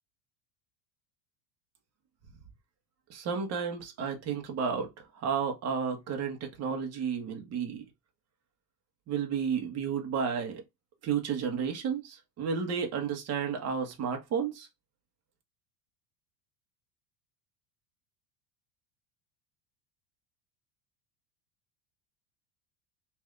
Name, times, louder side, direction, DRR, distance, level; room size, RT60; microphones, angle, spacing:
voice 1, 3.1-4.9 5.1-7.8 9.1-10.6 11.0-14.7, right 6 dB, 35° right, 1.1 m, -32 dB
3.3 x 2.6 x 3.6 m
cardioid pair, 155°, 47 cm